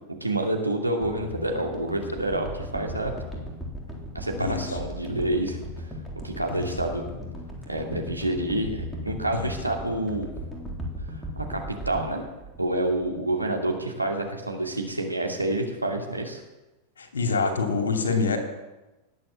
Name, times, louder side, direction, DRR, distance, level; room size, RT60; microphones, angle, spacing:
voice 1, 0.2-3.1 4.1-5.6 6.2-7.0 7.7-10.3 11.3-11.6 11.8-12.2 12.6-16.4, right 1 dB, 85° right, 1 dB, 2.6 m, -28 dB
sound 1, 1.0-13.3 13.6-13.8, equal, 5° left, 3.7 m, -37 dB
voice 2, 17.0-18.4, left 4 dB, 70° left, 5 dB, 2.9 m, -26 dB
19.0 x 8.5 x 7.5 m, 1.1 s
figure-of-eight pair, 90°, 0 cm